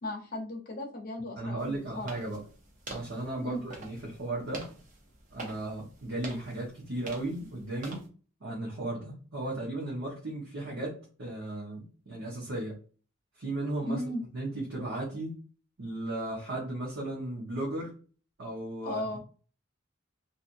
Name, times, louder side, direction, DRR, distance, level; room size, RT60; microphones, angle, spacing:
voice 1, 0.0-2.1 3.4-3.6 13.8-14.2 18.8-19.2, left 1 dB, 45° left, 0 dB, 0.7 m, -36 dB
voice 2, 1.4-2.4 2.9-4.7 5.3-8.1 8.4-12.8 13.4-14.0 14.3-15.4 15.8-17.9 18.4-19.0, right 2 dB, 70° right, -4 dB, 0.9 m, -35 dB
sound 1, 1.6-8.1, right 2 dB, 40° right, 0.7 m, -47 dB
2.8 x 2.5 x 2.5 m, 0.39 s
head